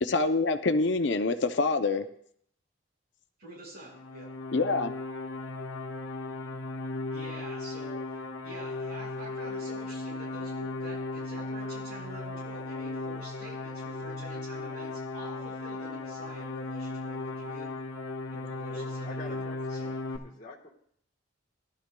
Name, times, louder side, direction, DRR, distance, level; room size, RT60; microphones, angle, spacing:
voice 1, 0.0-2.1 4.5-4.9, left 3 dB, 60° left, 9 dB, 0.5 m, -26 dB
voice 2, 3.4-4.3 7.1-8.0 8.4-17.7 18.3-20.0, right 1 dB, 55° right, -6 dB, 5.3 m, -47 dB
sound 1, 3.9-20.2, left 2 dB, 80° left, 1.1 m, -36 dB
voice 3, 18.7-19.8 20.2-20.7, left 2 dB, 40° left, -2 dB, 1.3 m, -45 dB
17.5 x 11.5 x 2.2 m, 0.65 s
head